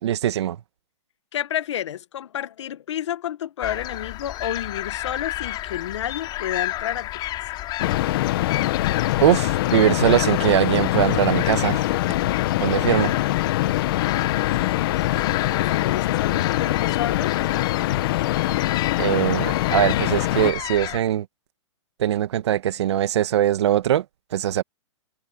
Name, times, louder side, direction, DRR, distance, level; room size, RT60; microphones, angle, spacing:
voice 1, 0.0-0.6 9.2-11.9 12.6-13.1 19.0-21.3 22.0-24.0 24.3-24.6, right 11 dB, 65° right, 1.8 m, -21 dB
voice 2, 1.3-7.1 7.5-7.6 14.0-14.6 15.0-15.1 15.4-17.3, left 10 dB, 70° left, 1.7 m, -30 dB
sound 1, 3.6-21.0, left 15 dB, 25° left, 6.0 m, -32 dB
sound 2, 7.8-20.5, left 16 dB, 50° left, 1.7 m, -23 dB
hypercardioid pair, 140°, 16 cm